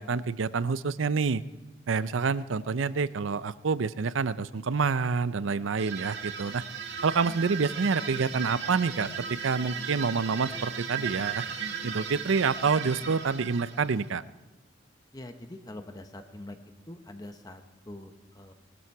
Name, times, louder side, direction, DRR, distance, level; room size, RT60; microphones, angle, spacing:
voice 1, 0.0-1.4 1.9-6.6 7.0-9.1 9.4-11.4 11.8-14.2, right 5 dB, 85° right, 16 dB, 0.5 m, -27 dB
sound 1, 5.8-14.2, right 7 dB, 60° right, 1.7 m, -36 dB
voice 2, 15.1-16.6 16.9-18.5, left 1 dB, 20° left, 7 dB, 0.9 m, -44 dB
19.5 x 12.5 x 4.7 m, 1.1 s
head